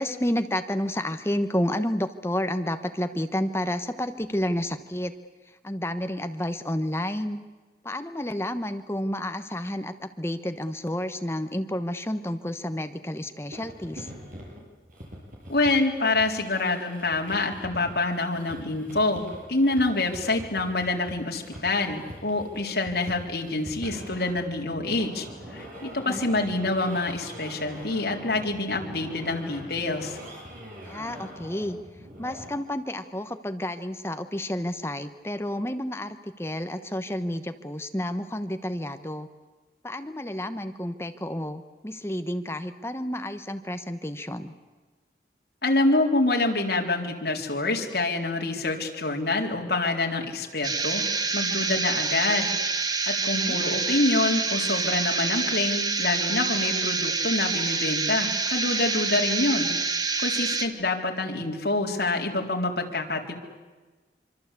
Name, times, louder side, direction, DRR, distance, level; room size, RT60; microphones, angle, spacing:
voice 1, 0.0-5.1 5.6-7.4 7.8-14.1 26.1-26.3 30.8-31.8 32.2-39.3 39.8-44.5 53.3-53.6, left 1 dB, 15° left, 8 dB, 1.2 m, -30 dB
sound 1, 13.5-32.5, equal, 50° right, 7.9 m, -43 dB
voice 2, 15.5-25.3 25.5-30.2 45.6-51.0 51.3-52.5 53.1-59.7 60.2-63.3, left 2 dB, 65° left, 1 dB, 3.9 m, -26 dB
sound 2, 50.6-60.7, right 4 dB, 20° right, 1.4 m, -27 dB
25.5 x 25.0 x 8.4 m, 1.3 s
head